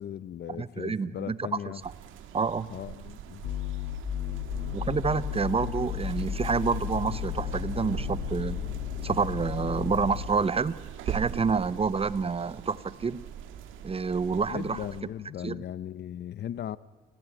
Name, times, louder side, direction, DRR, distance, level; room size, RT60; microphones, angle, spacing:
voice 1, 0.0-1.8 2.7-3.5 14.5-16.8, left 10 dB, 55° left, 0.7 m, -37 dB
voice 2, 0.6-1.5 2.3-2.7 4.7-8.6 9.0-10.7 11.1-13.2 13.8-14.9 15.4-15.6, right 5 dB, 30° right, 0.8 m, -28 dB
sound 1, 1.8-15.0, right 9 dB, 85° right, 1.7 m, -42 dB
sound 2, 3.4-10.3, left 10 dB, 80° left, 1.3 m, -34 dB
25.5 x 17.0 x 9.0 m
cardioid pair, 90°, 20 cm